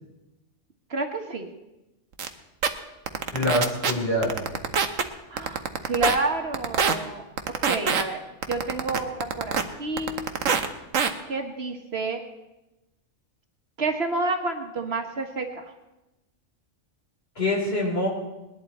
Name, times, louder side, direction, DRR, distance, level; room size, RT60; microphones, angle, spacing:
voice 1, 0.9-1.5 5.3-7.2 7.6-8.2 8.5-10.2 11.3-12.2 13.8-15.6, right 2 dB, 55° right, 4 dB, 1.5 m, -29 dB
sound 1, 2.2-2.3 2.6-2.7 3.1-3.9 4.2-5.0 5.4-6.2 6.5-6.9 7.4-8.0 8.4-9.6 10.0-10.7 10.9-11.1, right 6 dB, 85° right, 1.3 m, -23 dB
voice 2, 3.3-4.3 17.4-18.1, left 1 dB, 50° left, -2 dB, 3.9 m, -24 dB
20.5 x 11.0 x 4.2 m, 0.99 s
omnidirectional pair, 1.3 m